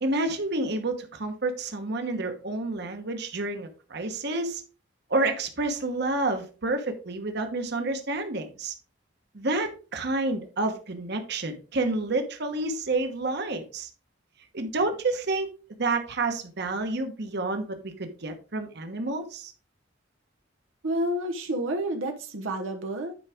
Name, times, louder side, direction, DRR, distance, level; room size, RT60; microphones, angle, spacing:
voice 1, 0.0-4.6 5.1-8.7 9.3-13.9 14.5-15.5 15.8-19.5, right 2 dB, 60° right, 1.1 m, -29 dB
voice 2, 20.8-23.2, right 1 dB, 90° right, 0.9 m, -29 dB
9.6 x 4.8 x 3.5 m
head